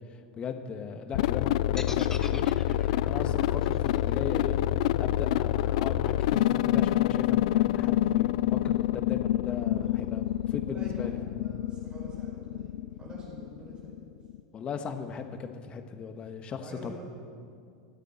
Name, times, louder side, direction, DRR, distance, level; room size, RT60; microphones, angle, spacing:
voice 1, 0.4-2.5 3.0-4.6 5.0-11.2 14.5-16.9, left 6 dB, 30° left, 7 dB, 1.3 m, -38 dB
sound 1, 1.1-14.4, left 13 dB, 75° left, 0.4 m, -27 dB
sound 2, 1.8-5.8, left 3 dB, 10° left, 0.9 m, -44 dB
voice 2, 9.6-10.1 10.7-14.2 16.6-16.9, right 2 dB, 25° right, -3 dB, 4.4 m, -47 dB
25.5 x 9.0 x 4.4 m, 2.3 s
supercardioid pair, 120°, 4 cm